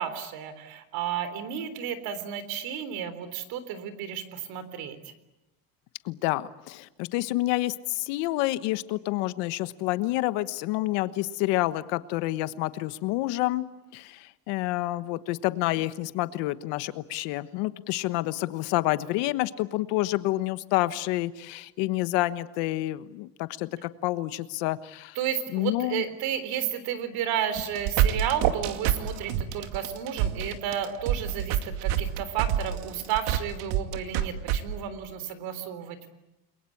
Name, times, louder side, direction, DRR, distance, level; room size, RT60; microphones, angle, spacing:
voice 1, 0.0-5.0 25.2-36.1, right 9 dB, 60° right, 12 dB, 3.7 m, -32 dB
voice 2, 6.0-13.6 13.9-25.2 25.5-26.0, left 17 dB, 80° left, 13 dB, 1.3 m, -28 dB
sound 1, 27.6-34.6, right 11 dB, 80° right, 2.5 m, -26 dB
29.5 x 22.5 x 8.6 m, 0.94 s
cardioid pair, 175°, 40 cm